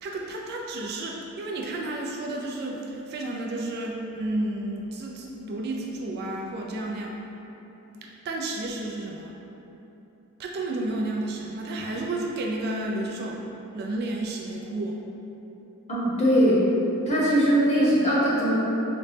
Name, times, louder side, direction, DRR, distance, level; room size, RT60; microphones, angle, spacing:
voice 1, 0.0-7.1 8.0-9.4 10.4-13.4 13.7-15.0, right 2 dB, 45° right, -1 dB, 0.3 m, -31 dB
voice 2, 15.9-16.6 17.1-18.5, equal, 30° left, -7 dB, 0.7 m, -21 dB
3.9 x 2.1 x 3.2 m, 3.0 s
head